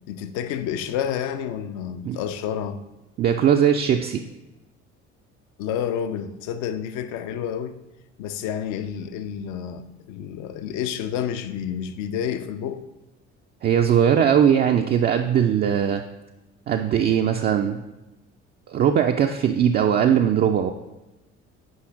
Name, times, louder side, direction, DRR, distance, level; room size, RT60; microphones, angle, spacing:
voice 1, 0.1-2.8 5.6-7.8 8.2-12.9, left 9 dB, 55° left, 0.6 m, -29 dB
voice 2, 3.2-4.2 13.6-16.0 16.7-17.8 18.7-20.7, right 8 dB, 30° right, 0.4 m, -20 dB
7.9 x 5.6 x 3.7 m
figure-of-eight pair, 55°, 36 cm